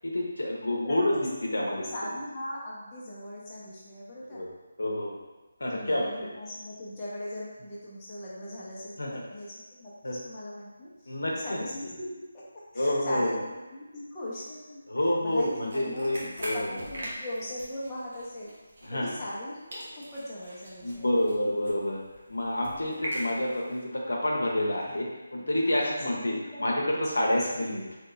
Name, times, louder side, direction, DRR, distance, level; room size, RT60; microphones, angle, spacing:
voice 1, 0.0-1.7 4.3-4.5 4.8-5.2 5.6-6.0 9.0-9.1 10.0-10.2 11.1-11.6 12.7-13.4 14.9-16.7 18.8-19.1 20.8-22.0 22.3-26.3 26.6-27.8, left 1 dB, 85° left, -2 dB, 0.8 m, -28 dB
voice 2, 0.7-1.0 1.4-4.4 5.7-12.5 12.7-14.8 15.2-18.5 18.9-21.2 22.8-22.9 25.5-26.9 27.3-28.0, left 1 dB, 20° left, -8 dB, 0.8 m, -39 dB
sound 1, 15.3-19.5 19.7-23.8, equal, 55° right, 1.0 m, -41 dB
3.8 x 2.9 x 2.3 m, 1.2 s
figure-of-eight pair, 160°, 0 cm